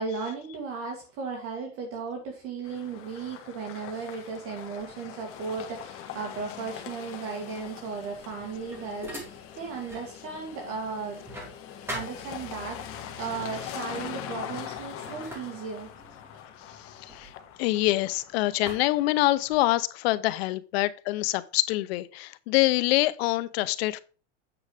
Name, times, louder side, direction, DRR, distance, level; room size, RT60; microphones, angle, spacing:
voice 1, 0.0-11.2 11.9-15.9, right 5 dB, 40° right, 2.0 m, -36 dB
sound 1, 2.6-19.6, left 9 dB, 40° left, 1.6 m, -42 dB
sound 2, 8.1-10.1 10.5-12.8 13.7-13.9 14.3-18.1 18.7-19.8, equal, 5° right, 2.5 m, -43 dB
voice 2, 17.6-24.0, left 18 dB, 60° left, 0.8 m, -25 dB
8.9 x 4.8 x 4.9 m
supercardioid pair, 145°, 35 cm